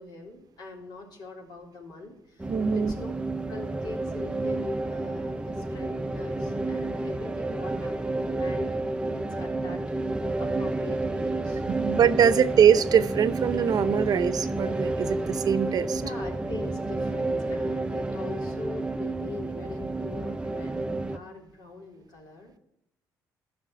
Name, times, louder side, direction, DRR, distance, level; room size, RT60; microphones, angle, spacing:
voice 1, 0.0-3.1 3.5-8.0 8.3-9.8 10.1-11.6 15.9-22.6, left 3 dB, 65° left, 0 dB, 3.5 m, -42 dB
sound 1, 2.4-21.2, right 2 dB, 10° right, 0.7 m, -30 dB
voice 2, 2.5-2.9 11.7-15.9, right 8 dB, 55° right, 11 dB, 0.8 m, -22 dB
13.0 x 6.0 x 7.5 m, 0.83 s
supercardioid pair, 75°, 8 cm